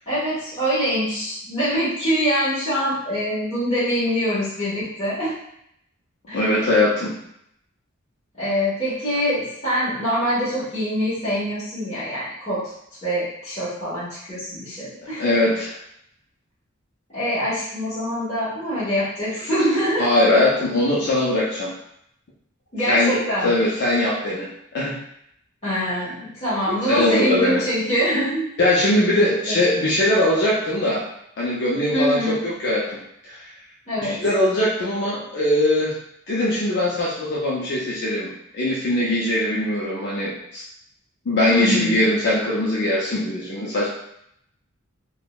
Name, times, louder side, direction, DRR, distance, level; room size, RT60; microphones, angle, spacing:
voice 1, 0.1-5.3 6.3-6.6 8.4-12.6 13.0-15.2 17.1-20.1 22.7-23.6 25.6-28.4 28.8-28.9 29.2-29.6 31.9-32.4 33.9-34.2 41.5-42.0, equal, 35° left, -13 dB, 1.1 m, -24 dB
voice 2, 6.3-7.1 15.2-15.7 20.0-21.7 22.9-23.2 23.4-25.0 26.7-27.6 28.6-31.1 31.4-33.0 33.3-33.4 34.1-36.0 36.3-38.3 38.5-40.6 41.3-43.9, left 1 dB, 55° left, -6 dB, 0.5 m, -21 dB
3.5 x 2.1 x 2.3 m, 0.74 s
head